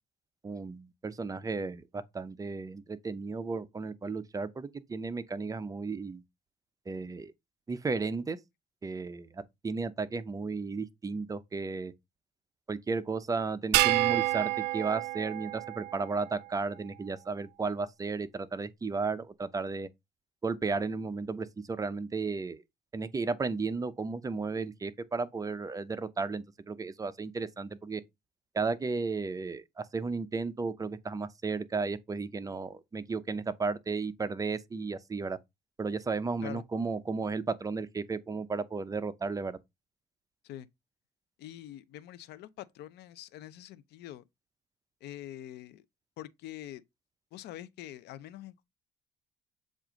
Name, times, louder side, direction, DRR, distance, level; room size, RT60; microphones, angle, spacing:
voice 1, 0.4-6.2 6.9-7.3 7.7-8.4 8.8-11.9 12.7-19.9 20.4-22.6 22.9-28.0 28.5-35.4 35.8-39.6, right 4 dB, 20° right, 0.5 m, -34 dB
sound 1, 13.7-16.3, right 17 dB, 85° right, 0.4 m, -28 dB
voice 2, 41.4-44.2 45.0-45.8 46.2-46.8 47.3-48.6, left 13 dB, 75° left, 0.6 m, -45 dB
7.3 x 2.5 x 5.0 m
cardioid pair, 110°, 17 cm